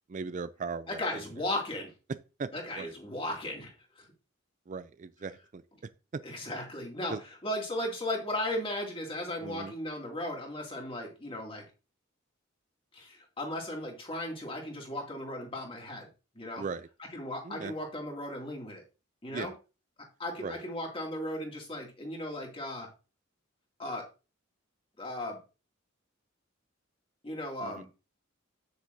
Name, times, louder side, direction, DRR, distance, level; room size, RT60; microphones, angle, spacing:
voice 1, 0.1-1.2 2.1-2.9 4.7-6.2 7.1-7.2 9.4-9.7 16.6-16.9 17.4-17.7 19.3-19.6 20.4-20.6 27.6-27.8, right 4 dB, 40° right, 0.4 m, -39 dB
voice 2, 0.9-1.9 2.5-4.1 6.2-7.1 7.4-11.6 12.9-16.1 16.3-16.6 17.1-18.8 19.2-19.5 20.2-22.9 23.8-24.1 25.0-25.4 27.2-27.9, left 1 dB, 25° left, 2.4 m, -36 dB
9.2 x 8.1 x 2.7 m
head